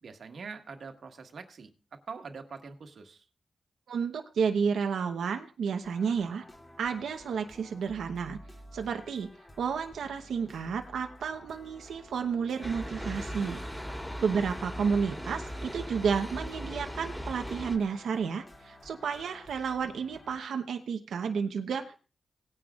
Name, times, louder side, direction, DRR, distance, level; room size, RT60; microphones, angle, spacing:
voice 1, 0.0-3.2 14.2-14.4, right 5 dB, 65° right, 6 dB, 1.6 m, -44 dB
voice 2, 3.9-6.4 6.8-8.4 8.7-9.3 9.6-13.6 14.2-22.0, right 6 dB, 85° right, 5 dB, 0.9 m, -31 dB
sound 1, 5.8-20.4, equal, 20° left, 2.5 m, -52 dB
sound 2, 12.6-17.8, equal, 5° left, 3.2 m, -38 dB
18.5 x 9.8 x 2.4 m, 0.34 s
cardioid pair, 75°, 0 cm